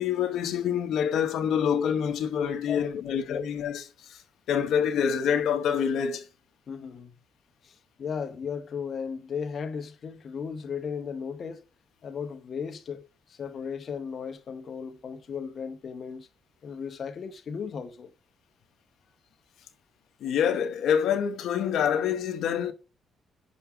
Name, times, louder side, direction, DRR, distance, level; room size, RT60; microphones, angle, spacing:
voice 1, 0.0-4.2 4.5-6.3 20.2-22.7, left 8 dB, 75° left, 1.0 m, -26 dB
voice 2, 2.7-3.4 6.7-7.1 7.6-11.6 12.0-16.3 16.6-18.1, left 6 dB, 50° left, 0.9 m, -36 dB
6.1 x 5.4 x 5.6 m
cardioid pair, 90°, 0 cm